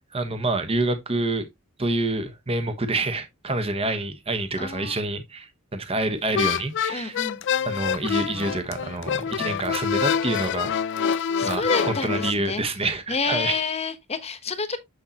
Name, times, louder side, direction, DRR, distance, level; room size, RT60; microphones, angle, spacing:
voice 1, 0.1-1.5 1.8-7.2 7.6-10.7 11.4-13.6 14.7-14.8, right 2 dB, 30° right, 1.1 m, -27 dB
voice 2, 4.6-5.0 6.9-7.4 11.0-12.6 13.1-14.8, left 4 dB, 30° left, 1.1 m, -29 dB
sound 1, 6.3-12.3, left 7 dB, 60° left, 0.4 m, -26 dB
7.2 x 6.3 x 2.8 m
head